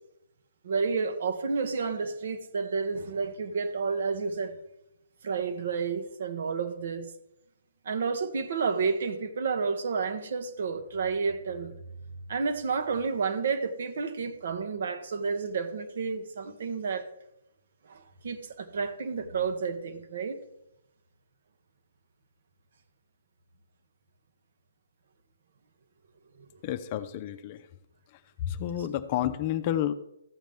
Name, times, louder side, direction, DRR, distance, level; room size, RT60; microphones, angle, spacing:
voice 1, 0.6-4.6 5.2-7.1 7.8-11.7 12.3-17.1 17.9-20.4 26.4-26.5, right 5 dB, 60° right, 1.2 m, -30 dB
voice 2, 26.6-27.6 28.5-29.9, left 11 dB, 35° left, 0.6 m, -30 dB
13.0 x 7.4 x 3.5 m
hypercardioid pair, 140°, 0 cm